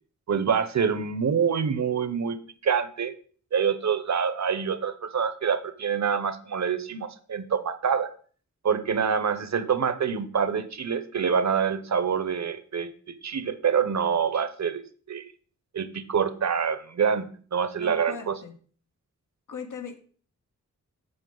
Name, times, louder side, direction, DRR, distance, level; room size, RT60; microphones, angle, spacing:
voice 1, 0.3-2.4 2.6-3.1 3.5-8.1 8.6-14.8 15.1-15.2 15.7-18.4, right 7 dB, 60° right, 12 dB, 0.8 m, -26 dB
voice 2, 17.8-18.5 19.5-20.0, left 6 dB, 75° left, 5 dB, 1.4 m, -39 dB
7.9 x 7.5 x 3.9 m, 0.43 s
wide cardioid pair, 140°, 31 cm